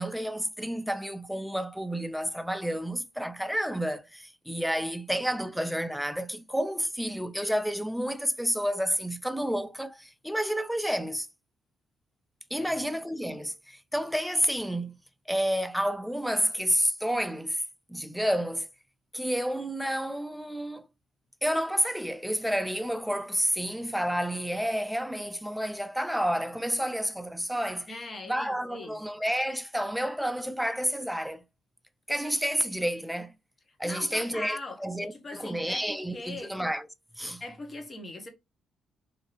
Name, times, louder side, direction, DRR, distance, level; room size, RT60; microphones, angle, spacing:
voice 1, 0.0-11.3 12.5-15.0 15.3-17.6 17.9-18.7 19.1-20.9 21.4-27.9 28.3-31.4 32.1-33.3 33.8-36.9 37.2-37.4, equal, ahead, 0.4 m, -30 dB
voice 2, 27.9-29.0 33.8-36.5 37.4-38.3, left 2 dB, 30° left, 1.0 m, -41 dB
2.8 x 2.7 x 3.0 m
cardioid pair, 90°, 0 cm